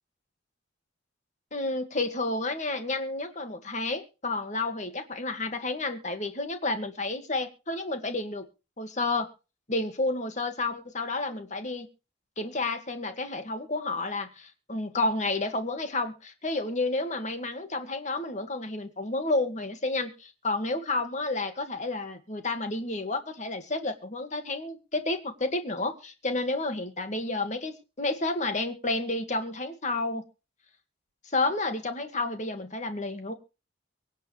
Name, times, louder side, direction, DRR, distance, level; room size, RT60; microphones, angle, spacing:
voice 1, 1.5-8.5 8.8-9.3 9.7-11.9 12.4-30.2 31.3-33.3, left 2 dB, 40° left, 7 dB, 2.1 m, -30 dB
24.0 x 8.2 x 3.4 m, 0.31 s
head